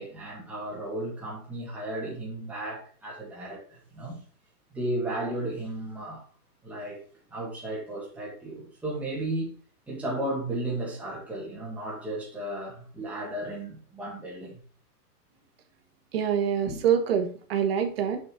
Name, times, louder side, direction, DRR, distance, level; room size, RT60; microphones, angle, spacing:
voice 1, 0.0-4.2 4.7-6.2 6.6-7.0 7.3-9.5 9.9-14.6 16.7-16.8, right 1 dB, 5° right, 1.5 m, -34 dB
voice 2, 16.1-18.2, right 8 dB, 40° right, 1.5 m, -25 dB
6.6 x 5.4 x 4.0 m
hypercardioid pair, 170°, 47 cm